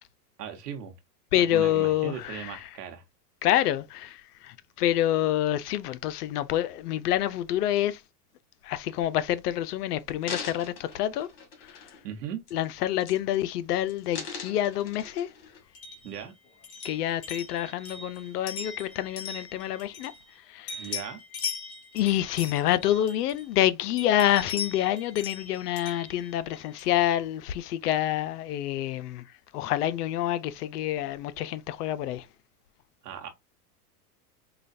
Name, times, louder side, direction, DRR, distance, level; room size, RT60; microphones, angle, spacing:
voice 1, 0.4-0.9 1.4-3.0 12.0-12.4 16.0-16.4 20.8-21.2 33.0-33.3, right 9 dB, 85° right, 1.1 m, -38 dB
voice 2, 1.3-2.6 3.4-8.0 8.6-11.3 11.7-11.8 12.5-15.3 16.8-20.1 20.5-20.9 21.9-29.2 29.5-32.2, left 12 dB, 80° left, 0.6 m, -27 dB
sound 1, 9.4-9.5 10.0-12.1 12.5-12.7 13.0-13.6 13.9-15.6 16.2-16.3, left 5 dB, 60° left, 2.0 m, -41 dB
sound 2, 15.7-20.4 20.7-23.6 24.0-27.0, left 5 dB, 30° left, 1.1 m, -40 dB
4.9 x 2.3 x 2.6 m
supercardioid pair, 125°, 46 cm